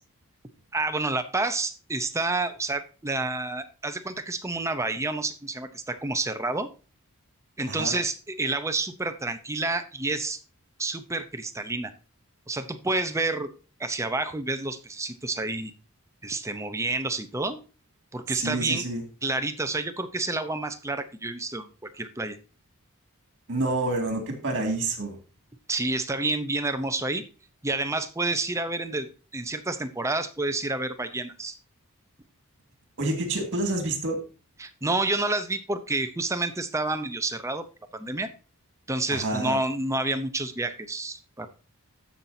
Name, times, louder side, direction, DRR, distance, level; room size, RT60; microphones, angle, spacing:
voice 1, 0.7-6.7 7.6-10.4 10.8-11.9 12.5-13.5 13.8-15.7 16.2-17.6 18.1-18.8 19.2-21.7 22.0-22.4 25.7-27.2 27.6-29.1 29.3-31.6 34.6-37.7 37.9-38.3 38.9-41.5, right 2 dB, 15° right, 9 dB, 0.7 m, -29 dB
voice 2, 18.3-19.0 23.5-25.2 33.0-34.2 39.1-39.6, right 2 dB, 55° right, 4 dB, 2.3 m, -28 dB
14.5 x 5.8 x 2.7 m, 0.34 s
head